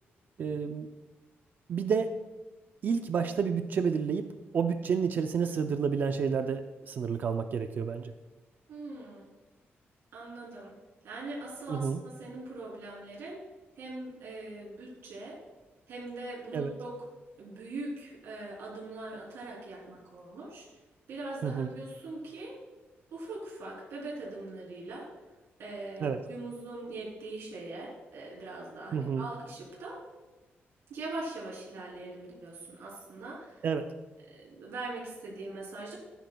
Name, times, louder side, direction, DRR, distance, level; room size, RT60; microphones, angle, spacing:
voice 1, 0.4-0.9 1.7-2.1 2.8-8.1 11.7-12.0 16.5-16.7 21.4-21.7 26.0-26.2 28.9-29.3 33.6-33.9, right 6 dB, 50° right, 8 dB, 0.4 m, -30 dB
voice 2, 8.7-9.3 10.1-10.7 11.0-13.4 13.8-15.4 15.9-16.9 17.4-20.6 21.1-22.5 23.1-25.1 25.6-29.9 30.9-33.6 34.3-35.9, right 2 dB, 80° right, -5 dB, 3.1 m, -41 dB
14.5 x 9.1 x 2.2 m, 1.2 s
wide cardioid pair, 170°, 4 cm